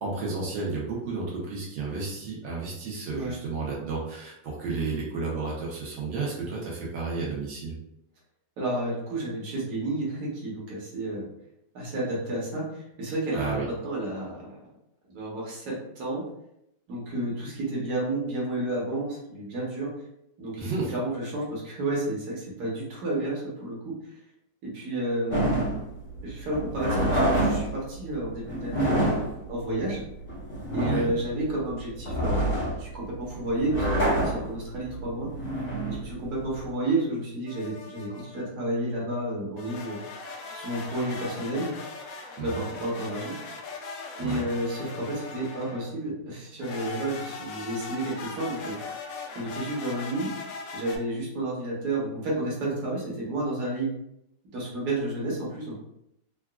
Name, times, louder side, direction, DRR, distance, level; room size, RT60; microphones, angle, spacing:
voice 1, 0.0-7.7 13.3-13.7 20.6-20.9 30.8-31.1 42.4-42.6 44.2-44.4, right 4 dB, 85° right, -4 dB, 1.4 m, -32 dB
voice 2, 8.6-11.3 11.7-14.6 15.1-16.2 16.9-19.9 20.4-23.9 24.6-25.6 26.2-29.1 29.5-30.0 30.7-35.3 35.9-40.0 40.5-41.7 42.4-43.3 44.2-48.7 49.3-50.3 50.7-53.9 54.5-55.8, right 1 dB, 65° right, -5 dB, 1.5 m, -31 dB
sound 1, 25.3-36.7, right 1 dB, 35° left, 1.5 m, -27 dB
sound 2, 37.5-38.5 39.6-46.0 46.6-51.0, left 4 dB, 70° left, 0.9 m, -40 dB
3.9 x 2.3 x 2.3 m, 0.81 s
omnidirectional pair, 1.9 m